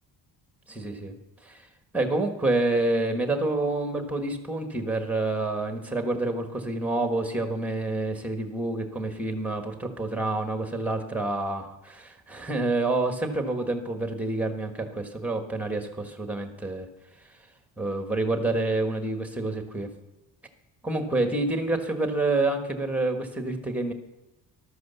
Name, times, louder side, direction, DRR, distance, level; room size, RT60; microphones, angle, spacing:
voice 1, 0.7-1.1 1.4-1.7 1.9-16.9 17.8-19.9 20.8-23.9, right 2 dB, 5° right, 5 dB, 1.4 m, -28 dB
14.0 x 12.5 x 6.9 m, 1.0 s
cardioid pair, 180°, 41 cm